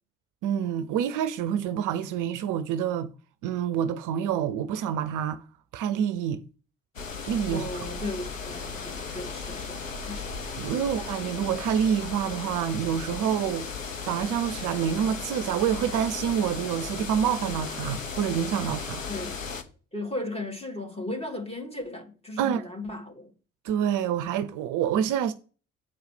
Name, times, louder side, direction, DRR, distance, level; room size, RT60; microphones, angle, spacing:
voice 1, 0.4-3.1 3.4-5.4 5.7-6.4 7.3-7.7 10.6-13.7 14.0-19.0 22.4-22.6 23.6-25.3, right 9 dB, 55° right, 0.6 m, -27 dB
sound 1, 7.0-19.6, left 5 dB, 90° left, 0.8 m, -36 dB
voice 2, 7.5-10.4 10.7-10.8 19.1-19.3 19.9-23.3, left 2 dB, 15° left, 2.7 m, -36 dB
8.4 x 4.7 x 5.0 m
figure-of-eight pair, 40°, 38 cm